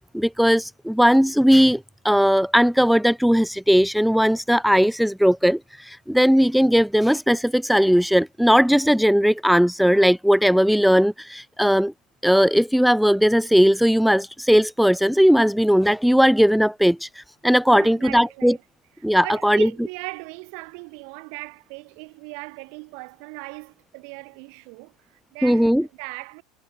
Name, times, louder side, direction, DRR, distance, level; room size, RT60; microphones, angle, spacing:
voice 1, 0.0-11.9 12.2-18.6 19.0-19.7 25.4-25.8, equal, ahead, 0.6 m, -18 dB
voice 2, 17.7-18.6 19.2-26.4, right 40 dB or more, 60° right, 4.7 m, -38 dB
figure-of-eight pair, 75°, 3 cm